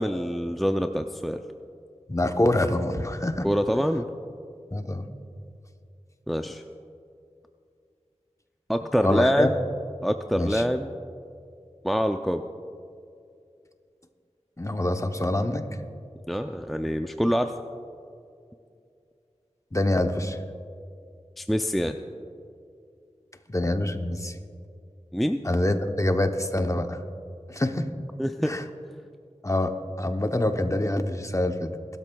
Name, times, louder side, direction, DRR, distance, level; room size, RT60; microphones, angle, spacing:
voice 1, 0.0-1.4 3.4-4.1 6.3-6.6 8.7-9.6 10.0-10.9 11.8-12.4 16.3-17.5 21.4-22.0 25.1-25.4 28.2-28.5, equal, ahead, 6 dB, 0.4 m, -25 dB
voice 2, 2.1-3.5 4.7-5.1 9.0-9.5 10.4-10.6 14.6-15.7 19.7-20.4 23.5-24.4 25.4-27.0 27.5-27.9 28.4-28.6 29.4-31.7, left 1 dB, 25° left, 6 dB, 0.7 m, -25 dB
19.5 x 12.5 x 2.3 m, 2.4 s
wide cardioid pair, 50°, 12 cm